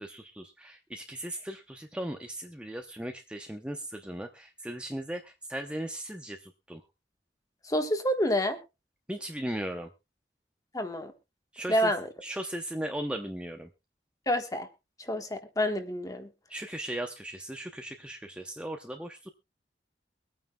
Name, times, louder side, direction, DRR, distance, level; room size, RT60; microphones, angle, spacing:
voice 1, 0.0-6.8 9.1-9.9 11.5-11.9 12.2-13.7 16.5-19.3, right 1 dB, 5° right, 4 dB, 0.7 m, -37 dB
voice 2, 7.6-8.6 10.7-11.1 11.7-12.1 14.3-14.7 15.1-16.3, equal, 20° left, 6 dB, 1.4 m, -28 dB
23.5 x 9.2 x 2.3 m, 0.26 s
head